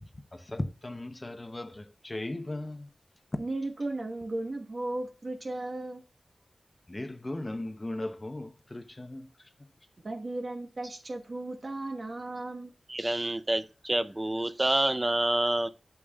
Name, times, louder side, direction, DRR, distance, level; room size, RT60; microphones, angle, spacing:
voice 1, 0.0-2.9 6.9-9.5, left 1 dB, 25° left, 0.8 m, -37 dB
voice 2, 3.4-6.0 10.0-12.7, right 2 dB, 50° right, 1.2 m, -35 dB
voice 3, 12.9-15.7, right 1 dB, 20° right, 0.6 m, -27 dB
8.4 x 7.1 x 2.3 m
wide cardioid pair, 85°, 0 cm